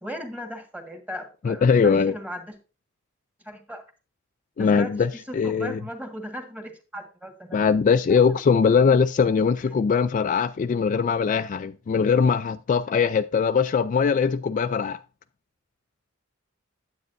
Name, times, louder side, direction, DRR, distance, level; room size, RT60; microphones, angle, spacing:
voice 1, 0.0-2.6 3.4-3.8 4.6-7.6 8.1-8.4 9.7-9.8, equal, 10° right, 1.5 m, -37 dB
voice 2, 1.4-2.1 4.6-5.8 7.5-15.0, left 6 dB, 40° left, 0.3 m, -21 dB
9.5 x 8.5 x 2.5 m
head